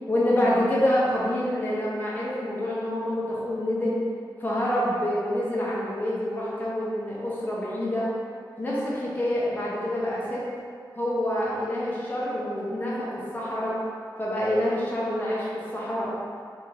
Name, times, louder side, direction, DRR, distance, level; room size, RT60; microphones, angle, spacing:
voice 1, 0.1-4.0 4.4-8.1 8.6-10.4 10.9-13.8 14.2-16.1, left 1 dB, 20° left, -7 dB, 0.9 m, -27 dB
3.1 x 2.9 x 3.8 m, 2.2 s
wide cardioid pair, 85°, 8 cm